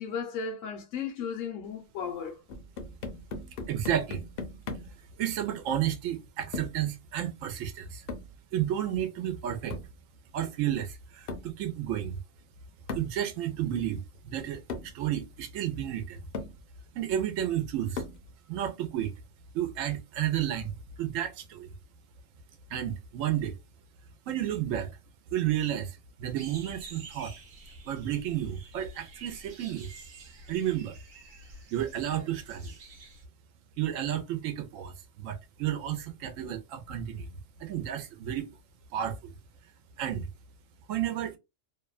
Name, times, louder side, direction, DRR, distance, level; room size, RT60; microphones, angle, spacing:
voice 1, 0.0-2.4, left 6 dB, 80° left, 1.0 m, -35 dB
sound 1, 2.5-5.0 6.5-6.9 8.1-8.4 9.7-10.0 11.3-11.6 12.9-13.2 14.2-14.3 14.7-15.0 15.8-15.9 16.3-16.6 18.0-18.3, left 3 dB, 55° left, 0.7 m, -38 dB
voice 2, 3.7-4.2 5.2-8.1 8.5-9.8 10.3-12.2 12.9-16.2 16.9-18.0 18.5-19.1 19.5-21.7 22.7-23.6 24.3-25.0 25.3-27.3 27.9-29.9 30.5-31.0 31.7-32.7 33.8-37.3 37.6-38.6 38.9-39.3 40.0-40.3 40.9-41.4, right 11 dB, 85° right, 1.0 m, -32 dB
sound 2, 26.4-33.2, right 3 dB, 55° right, 0.7 m, -49 dB
2.8 x 2.1 x 2.3 m
omnidirectional pair, 1.3 m